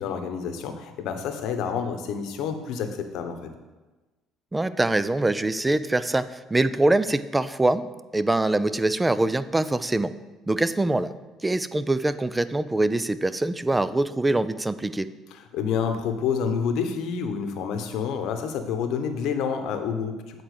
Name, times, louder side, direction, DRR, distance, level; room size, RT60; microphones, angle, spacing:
voice 1, 0.0-3.5 15.3-20.4, left 6 dB, 70° left, 6 dB, 0.9 m, -28 dB
voice 2, 4.5-7.9 8.1-10.1 10.5-11.1 11.4-15.1, right 2 dB, 15° right, 14 dB, 0.4 m, -24 dB
8.2 x 4.3 x 6.6 m, 1.2 s
supercardioid pair, 90°, 0 cm